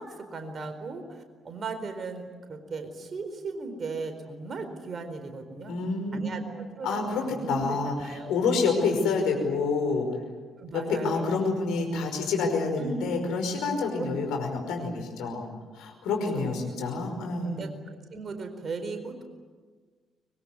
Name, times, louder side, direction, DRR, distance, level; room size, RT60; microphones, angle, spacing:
voice 1, 0.0-5.8 6.1-8.3 10.6-11.4 12.8-13.3 14.0-14.1 16.3-16.7 17.4-19.2, right 3 dB, 45° right, 7 dB, 4.4 m, -37 dB
voice 2, 5.7-6.4 6.8-7.9 8.3-10.1 10.7-15.4 15.8-17.6, left 4 dB, 65° left, 3 dB, 5.3 m, -28 dB
24.5 x 22.5 x 9.8 m, 1.5 s
figure-of-eight pair, 45°, 0 cm